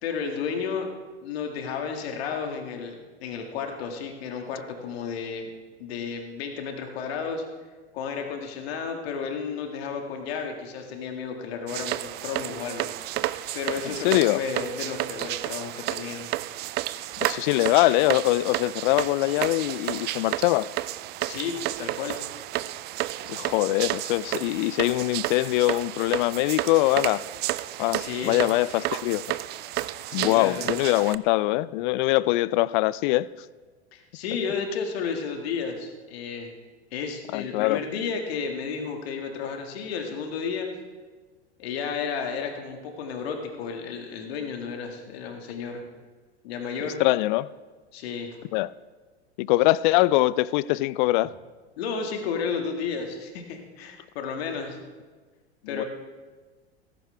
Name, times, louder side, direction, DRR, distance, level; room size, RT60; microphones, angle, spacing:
voice 1, 0.0-0.9 1.2-5.5 5.8-7.4 7.9-12.9 13.5-16.3 21.3-22.2 28.0-28.6 30.1-30.7 33.9-36.5 36.9-40.7 41.6-45.8 46.4-47.0 47.9-48.4 51.8-54.8 55.7-55.8, left 6 dB, 65° left, 3 dB, 2.1 m, -32 dB
sound 1, 11.7-31.2, right 16 dB, 30° right, 0.4 m, -32 dB
voice 2, 14.0-14.4 17.2-20.7 23.3-27.2 27.8-29.4 30.1-33.3 37.3-37.8 47.0-47.5 48.5-48.7 49.4-51.3 55.7-55.8, left 18 dB, 50° left, 21 dB, 0.4 m, -23 dB
16.0 x 14.5 x 3.4 m, 1.4 s
hypercardioid pair, 95°, 33 cm